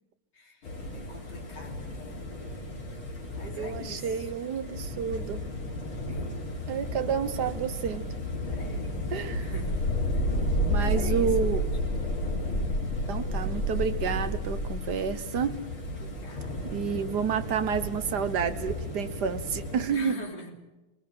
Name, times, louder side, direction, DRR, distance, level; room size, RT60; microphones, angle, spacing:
voice 1, 0.3-2.3 3.3-4.3 6.1-6.3 8.4-9.0 9.4-9.8 10.8-12.0 15.9-17.0 19.9-20.6, left 2 dB, 55° left, 1 dB, 3.7 m, -44 dB
sound 1, 0.6-19.9, left 1 dB, 70° left, 4.8 m, -32 dB
voice 2, 3.6-5.4 6.7-8.0 9.1-9.5 10.7-11.7 13.1-15.6 16.6-20.1, right 7 dB, 55° right, 10 dB, 1.5 m, -30 dB
21.0 x 21.0 x 7.8 m, 1.1 s
omnidirectional pair, 2.3 m